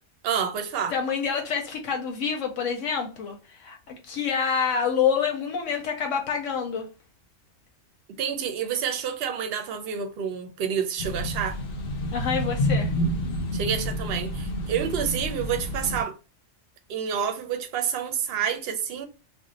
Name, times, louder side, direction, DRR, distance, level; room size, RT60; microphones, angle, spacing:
voice 1, 0.2-0.9 8.2-11.6 13.5-16.1 16.9-19.1, right 8 dB, 60° right, 0.7 m, -28 dB
voice 2, 0.9-6.9 12.1-12.9, left 6 dB, 85° left, 1.0 m, -27 dB
sound 1, 11.0-16.0, equal, 60° left, 0.7 m, -29 dB
2.6 x 2.1 x 3.8 m
omnidirectional pair, 1.3 m